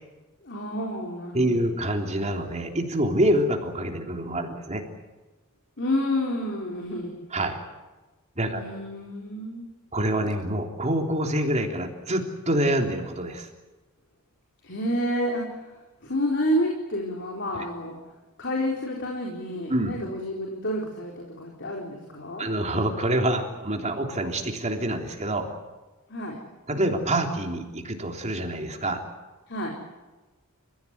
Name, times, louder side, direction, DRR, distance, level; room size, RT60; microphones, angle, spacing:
voice 1, 0.4-1.6 5.8-7.2 8.5-9.7 14.6-15.7 16.0-18.0 18.4-22.5 26.1-26.4 29.5-29.7, equal, 55° left, 0 dB, 4.1 m, -29 dB
voice 2, 1.3-4.8 7.3-7.6 8.4-8.8 9.9-13.5 19.7-19.9 22.4-25.5 26.7-29.0, right 1 dB, 30° right, 3 dB, 3.4 m, -26 dB
29.5 x 16.0 x 9.6 m, 1.2 s
head